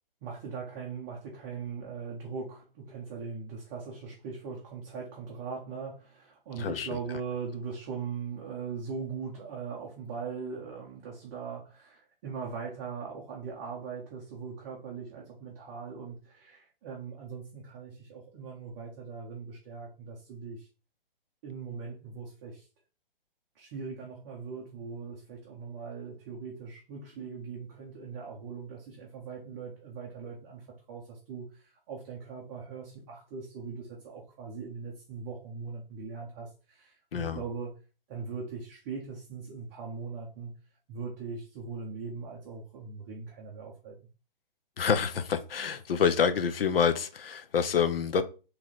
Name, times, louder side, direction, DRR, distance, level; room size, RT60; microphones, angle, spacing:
voice 1, 0.2-20.7 21.4-22.7 23.5-37.7 38.1-40.5 40.9-44.0, right 5 dB, 20° right, 0.6 m, -40 dB
voice 2, 44.8-48.2, left 7 dB, 75° left, 0.7 m, -27 dB
3.0 x 3.0 x 4.0 m
hypercardioid pair, 150°, 29 cm